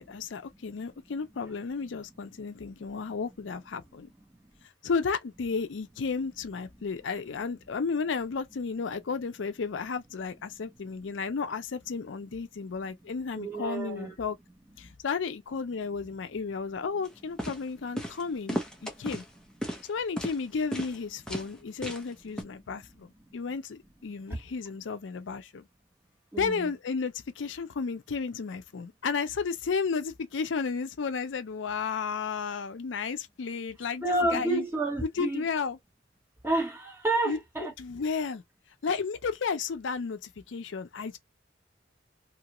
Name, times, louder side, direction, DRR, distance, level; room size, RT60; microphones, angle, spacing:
voice 1, 0.0-4.1 4.8-14.4 14.8-19.2 19.9-25.7 26.4-34.6 35.2-35.8 37.2-38.4 38.8-41.2, left 5 dB, 85° left, 0.5 m, -33 dB
voice 2, 13.4-14.1 26.3-26.7 34.0-35.4 36.4-37.7, right 2 dB, 15° right, 1.3 m, -29 dB
sound 1, 17.0-17.1 17.4-17.6 18.0-18.2 18.5-19.3 19.6-19.9 20.2-20.4 20.7-21.0 21.3-21.5 21.8-22.1 22.4-22.5, equal, 5° left, 0.7 m, -34 dB
2.8 x 2.4 x 2.9 m
head